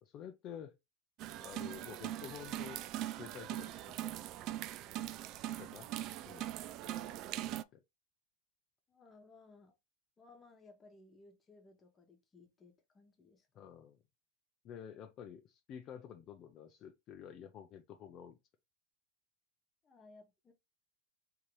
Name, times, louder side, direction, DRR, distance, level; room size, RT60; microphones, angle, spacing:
voice 1, 0.0-0.7 1.4-2.8 3.2-4.2 5.5-5.9 6.3-6.6 7.5-7.8 13.6-14.0 14.6-18.4, left 8 dB, 40° left, 0.5 m, -50 dB
sound 1, 1.2-7.6, right 13 dB, 50° right, 0.3 m, -41 dB
voice 2, 8.9-9.7 10.2-13.7 19.8-20.5, left 3 dB, 25° left, 1.0 m, -61 dB
3.7 x 2.8 x 3.1 m
hypercardioid pair, 110°, 0 cm